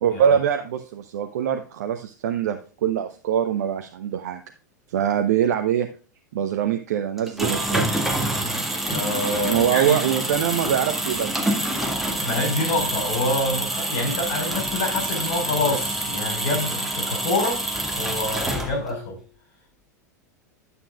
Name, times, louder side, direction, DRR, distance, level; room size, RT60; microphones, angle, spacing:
voice 1, 0.0-4.4 4.9-5.9 6.3-8.1 9.4-11.4, right 9 dB, 60° right, 7 dB, 0.7 m, -23 dB
sound 1, 7.2-19.0, right 1 dB, ahead, 1.9 m, -27 dB
voice 2, 8.8-10.0 12.2-17.6 18.0-19.2, left 2 dB, 50° left, 2 dB, 4.8 m, -26 dB
11.5 x 6.9 x 2.4 m, 0.38 s
figure-of-eight pair, 90°, 10 cm